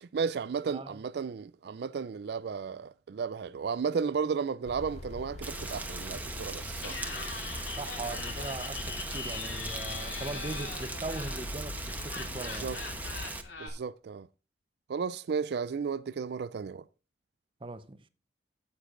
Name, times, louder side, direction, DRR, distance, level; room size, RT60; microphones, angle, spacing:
voice 1, 0.0-7.0 12.5-12.8 13.6-14.3 14.9-16.8, right 6 dB, 60° right, 0.4 m, -34 dB
voice 2, 0.6-1.0 7.8-12.7 17.6-18.0, right 2 dB, 30° right, 0.8 m, -40 dB
sound 1, 4.6-13.4, left 2 dB, 40° left, 0.6 m, -43 dB
Rain, 5.4-13.4, right 2 dB, 10° right, 1.1 m, -40 dB
Laughter, 6.8-13.7, left 4 dB, 80° left, 2.7 m, -41 dB
14.5 x 8.4 x 2.5 m
head